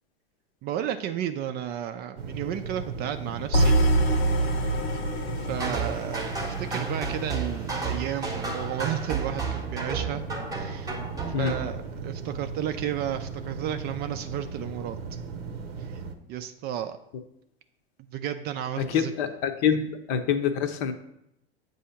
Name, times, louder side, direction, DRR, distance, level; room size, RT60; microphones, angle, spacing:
voice 1, 0.6-3.8 5.5-10.2 10.5-11.0 11.3-15.0 15.9-16.0 16.3-17.0 18.1-19.1, right 10 dB, 35° right, 9 dB, 0.4 m, -33 dB
sound 1, 2.2-16.1, right 5 dB, 85° right, 0.8 m, -37 dB
sound 2, 3.5-7.6, right 1 dB, 85° left, 1.2 m, -25 dB
sound 3, 5.6-11.7, right 4 dB, 10° right, 0.9 m, -32 dB
voice 2, 18.9-20.9, left 7 dB, 50° left, 8 dB, 0.8 m, -26 dB
7.5 x 2.7 x 5.6 m, 0.80 s
hypercardioid pair, 105°, 30 cm